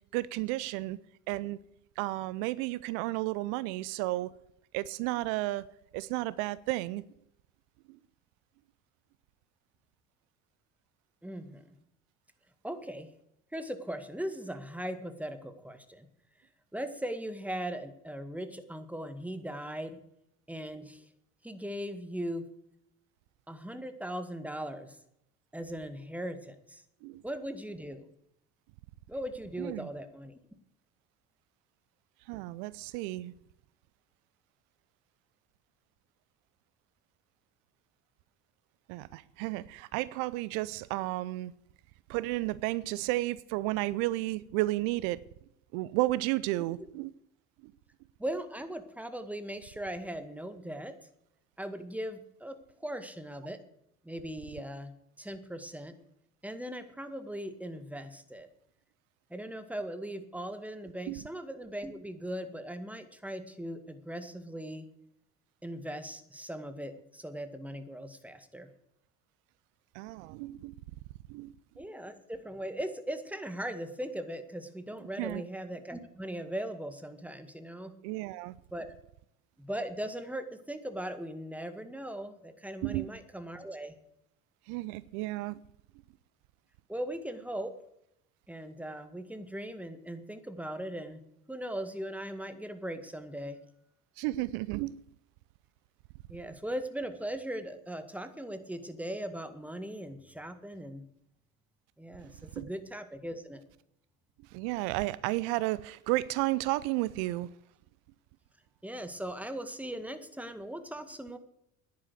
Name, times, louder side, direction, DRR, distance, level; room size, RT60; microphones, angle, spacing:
voice 1, 0.1-1.0 1.3-1.6 2.0-4.3 4.7-5.6 5.9-7.0 7.9-8.0 27.0-27.2 29.6-29.9 32.3-33.3 38.9-41.5 42.1-45.2 45.7-47.1 47.6-47.7 61.1-61.2 69.9-70.7 71.3-71.5 75.2-75.4 78.0-78.5 82.8-83.1 84.7-85.6 94.2-95.0 102.6-102.7 104.5-107.5, right 18 dB, 60° right, 0.6 m, -32 dB
voice 2, 11.2-11.8 12.6-13.1 13.5-16.1 16.7-20.0 20.5-21.1 21.4-22.5 23.5-25.0 25.5-26.8 27.2-28.1 29.1-30.4 48.2-51.0 51.6-53.6 54.0-56.0 56.4-58.5 59.3-64.9 65.6-68.7 71.8-77.9 78.7-78.9 79.6-84.0 86.9-87.8 88.5-91.2 91.5-93.6 96.3-101.1 102.0-103.6 108.8-111.4, right 1 dB, 5° right, 1.8 m, -39 dB
10.5 x 9.7 x 8.1 m
figure-of-eight pair, 60°, 40 cm